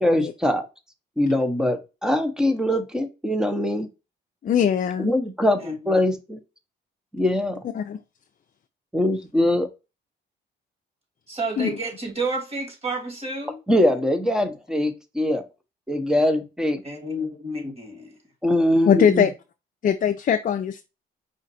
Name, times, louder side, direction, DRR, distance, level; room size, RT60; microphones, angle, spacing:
voice 1, 0.0-0.7 1.2-3.9 5.0-6.4 7.1-7.6 8.9-9.7 13.7-15.4 15.9-16.8 18.4-19.3, left 1 dB, 5° right, 0.9 m, -22 dB
voice 2, 4.4-5.1 7.7-8.0 11.6-11.8 18.8-19.3 19.8-20.8, left 8 dB, 45° left, 0.5 m, -21 dB
voice 3, 5.6-6.0 11.3-13.6 16.8-18.1, right 2 dB, 30° right, 2.4 m, -30 dB
5.1 x 2.5 x 4.1 m
cardioid pair, 90°, 20 cm